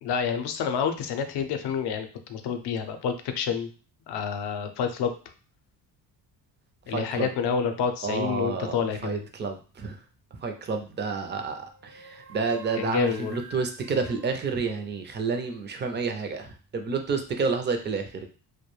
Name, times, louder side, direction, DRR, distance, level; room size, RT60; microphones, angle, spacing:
voice 1, 0.0-3.7 4.1-5.1 6.9-9.3 12.8-13.4, left 6 dB, 65° left, 7 dB, 0.5 m, -28 dB
voice 2, 6.9-7.3 8.0-10.0 10.4-18.3, right 4 dB, 25° right, 5 dB, 0.4 m, -30 dB
sound 1, 10.4-10.9 11.6-15.1, right 2 dB, 80° right, 0.6 m, -49 dB
2.3 x 2.1 x 3.0 m, 0.36 s
cardioid pair, 110°, 43 cm